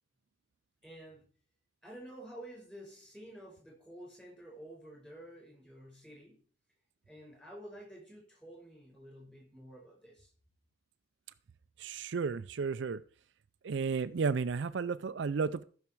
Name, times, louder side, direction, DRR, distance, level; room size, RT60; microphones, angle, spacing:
voice 1, 0.8-1.2 1.8-6.4 7.1-10.3, right 1 dB, 5° left, -2 dB, 5.3 m, -50 dB
voice 2, 11.8-13.0 13.6-15.6, right 5 dB, 60° right, 12 dB, 0.4 m, -33 dB
14.0 x 6.3 x 4.5 m, 0.42 s
head